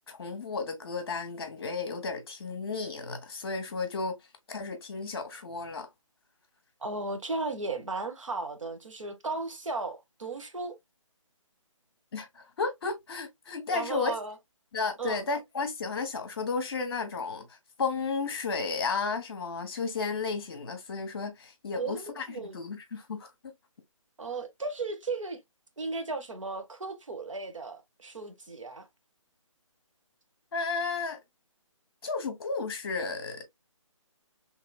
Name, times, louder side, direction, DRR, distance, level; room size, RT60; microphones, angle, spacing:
voice 1, 0.0-4.2 4.5-5.9 12.1-14.1 14.7-17.5 17.8-23.3 30.5-31.2 32.0-33.4, left 4 dB, 45° left, 1.2 m, -33 dB
voice 2, 6.8-10.7 13.7-14.3 15.0-15.2 21.7-22.6 24.2-25.4 25.8-28.9, right 3 dB, 70° right, 1.3 m, -35 dB
4.1 x 3.1 x 2.3 m
figure-of-eight pair, 150°, 17 cm